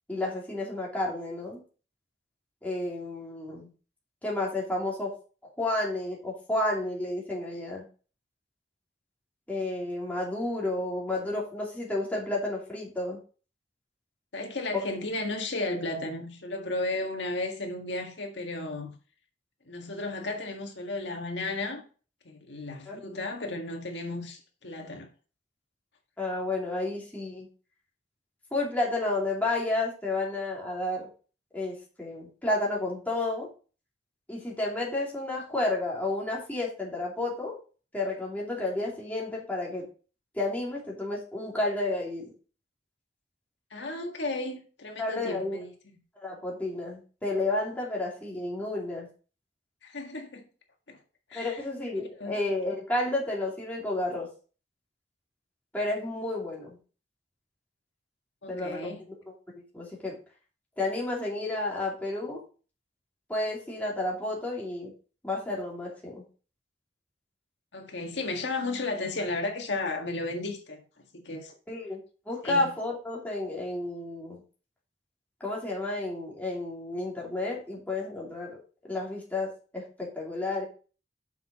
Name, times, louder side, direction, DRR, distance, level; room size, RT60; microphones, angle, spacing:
voice 1, 0.1-1.6 2.6-3.7 4.2-5.1 5.6-7.8 9.5-13.2 22.9-23.0 26.2-27.5 28.5-31.1 31.5-33.5 34.3-37.5 37.9-39.8 40.3-42.3 45.0-45.6 46.2-49.1 51.3-54.3 55.7-56.8 58.5-58.8 59.5-60.2 60.8-62.4 63.3-64.9 65.2-66.2 71.7-72.0 72.3-74.4 75.4-78.6 78.9-80.6, left 2 dB, 10° left, 2.7 m, -31 dB
voice 2, 14.3-19.0 19.7-21.8 22.3-25.1 43.7-45.7 49.8-50.5 50.9-51.0 51.3-51.6 52.0-52.4 58.4-59.0 67.7-70.8 71.1-71.5 72.4-72.7, left 2 dB, 75° left, 1.7 m, -34 dB
7.4 x 5.8 x 4.1 m
head